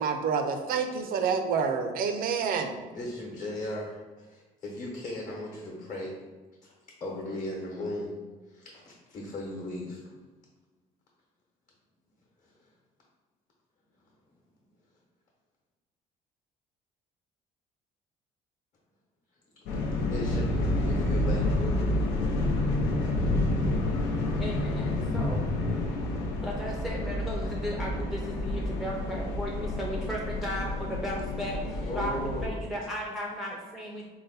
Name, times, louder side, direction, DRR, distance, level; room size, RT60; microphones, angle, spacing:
voice 1, 0.0-2.7, right 6 dB, 60° right, 6 dB, 0.5 m, -28 dB
voice 2, 2.9-6.1 6.6-6.7 7.0-8.2 8.5-10.1 20.0-21.8 31.8-32.7, left 1 dB, 45° left, -3 dB, 1.0 m, -37 dB
sound 1, 19.7-32.5, left 1 dB, 85° left, 0.6 m, -29 dB
voice 3, 24.4-25.5 26.4-34.1, equal, ahead, -3 dB, 0.4 m, -35 dB
3.9 x 2.1 x 3.9 m, 1.3 s
cardioid pair, 110°, 17 cm